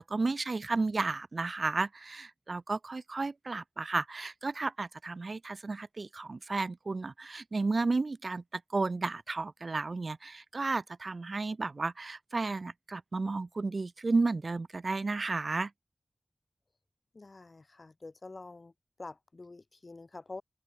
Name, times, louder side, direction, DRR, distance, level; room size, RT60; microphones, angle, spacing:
voice 1, 0.0-15.7, right 3 dB, 55° right, 1.9 m, -33 dB
voice 2, 17.1-18.7 19.0-20.4, left 3 dB, 45° left, 6.4 m, -47 dB
open air
wide cardioid pair, 95°, 0 cm